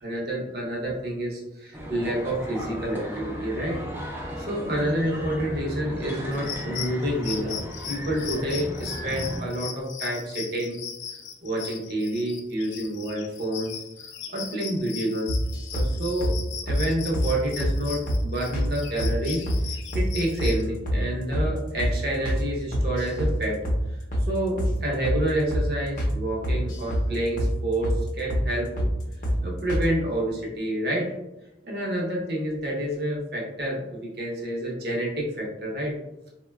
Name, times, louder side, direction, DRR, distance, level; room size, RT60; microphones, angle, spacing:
voice 1, 0.0-3.8 4.4-7.6 7.9-10.8 11.4-13.7 14.3-15.3 15.7-16.3 16.7-23.6 24.3-28.8 29.4-31.1 31.6-35.9, right 1 dB, 60° right, -3 dB, 0.8 m, -28 dB
sound 1, 1.7-9.5, equal, 10° right, 0.5 m, -35 dB
sound 2, 6.3-20.6, left 7 dB, 90° left, 0.4 m, -38 dB
sound 3, 15.3-15.9 16.2-16.4 16.7-16.8 17.1-17.3 17.6-17.8 18.1-18.2 18.5-18.7 19.0-19.6 19.9-20.1 20.4-20.6 20.9-21.0 21.3-21.5 21.8-21.9 22.2-22.4 22.7-23.3 23.6-23.8 24.1-24.3 24.6-24.7 25.0-25.2 25.5-25.7 26.0-26.1 26.4-27.1 27.4-27.5 27.8-28.0 28.3-28.5 28.8-28.9 29.2-29.4 29.7-29.9, equal, 45° left, 0.6 m, -25 dB
3.6 x 2.1 x 2.3 m, 0.93 s
head